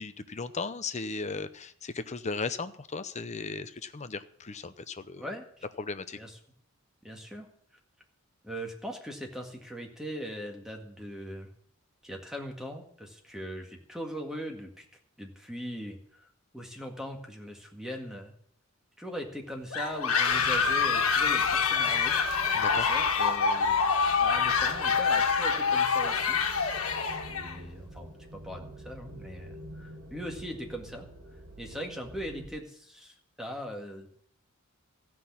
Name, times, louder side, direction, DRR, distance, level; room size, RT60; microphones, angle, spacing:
voice 1, 0.0-5.3 5.8-6.2 22.5-22.9, left 4 dB, 35° left, 11 dB, 0.7 m, -36 dB
voice 2, 5.2-5.7 6.1-6.4 7.0-7.5 8.4-11.5 12.0-14.9 15.2-18.3 19.0-22.2 22.7-23.8 24.2-26.4 27.3-31.1 31.6-34.1, equal, 5° right, 2 dB, 1.8 m, -40 dB
sound 1, 19.7-27.6, left 5 dB, 80° left, 1.6 m, -26 dB
sound 2, 20.3-32.5, right 1 dB, 80° right, 3.8 m, -47 dB
14.5 x 6.1 x 8.5 m, 0.64 s
head